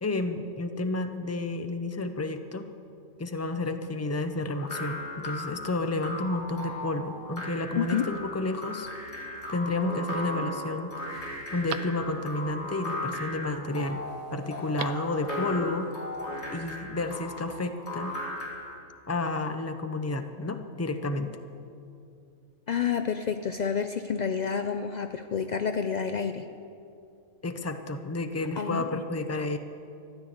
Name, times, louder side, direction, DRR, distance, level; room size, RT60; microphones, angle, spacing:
voice 1, 0.0-2.7 3.2-14.0 14.3-15.9 16.5-18.1 19.1-21.3 27.4-29.6, left 2 dB, 20° left, 8 dB, 0.4 m, -31 dB
sound 1, 4.5-18.8, left 1 dB, 50° left, 2.4 m, -37 dB
voice 2, 7.8-8.1 22.7-26.5 28.6-29.0, left 7 dB, 80° left, 7 dB, 0.4 m, -29 dB
Telephone, 9.4-10.0 10.5-10.6 11.0-12.5 14.5-15.2 15.4-15.5, right 10 dB, 80° right, 1.1 m, -42 dB
14.0 x 10.5 x 7.8 m, 2.5 s
omnidirectional pair, 1.4 m